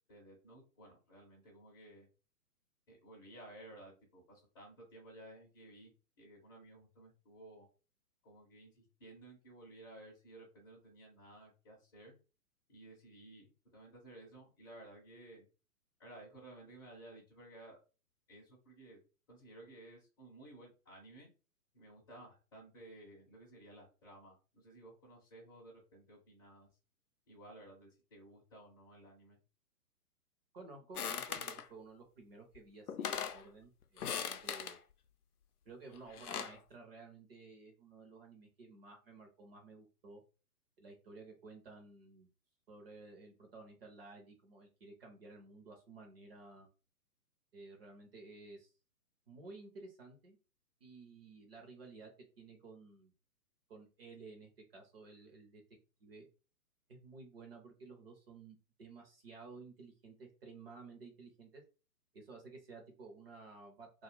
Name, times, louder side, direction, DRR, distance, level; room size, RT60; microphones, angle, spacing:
voice 1, 0.1-2.1 2.9-5.9 6.2-7.7 8.2-12.1 12.7-15.4 16.0-17.8 18.3-19.0 19.3-21.3 21.7-26.7 27.3-29.4, right 1 dB, 20° left, -5 dB, 0.6 m, -56 dB
voice 2, 30.5-34.8 35.7-40.2 40.8-42.3 42.7-46.7 47.5-48.7 49.3-50.4 50.8-52.1 52.4-53.1 53.7-55.6 56.0-56.3 56.9-61.6 62.1-64.0, right 3 dB, 40° right, 3 dB, 0.6 m, -54 dB
sound 1, 31.0-31.7 32.6-32.7 32.9-33.4 34.0-34.8 35.9-36.6, left 7 dB, 70° left, 0.6 m, -39 dB
2.3 x 2.3 x 3.1 m, 0.33 s
figure-of-eight pair, 125°, 47 cm